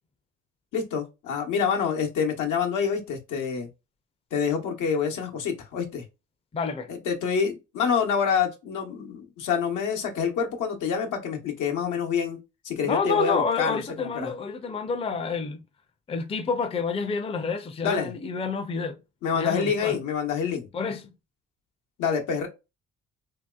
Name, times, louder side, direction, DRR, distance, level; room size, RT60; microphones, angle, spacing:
voice 1, 0.7-3.7 4.3-6.0 6.9-12.4 12.6-14.3 17.8-18.1 19.2-20.7 22.0-22.5, left 6 dB, 80° left, 0.9 m, -27 dB
voice 2, 6.5-6.9 12.8-15.6 16.1-19.0 19.3-20.0 20.7-21.0, left 5 dB, 20° left, 0.4 m, -28 dB
2.9 x 2.8 x 2.3 m
cardioid pair, 90°, 30 cm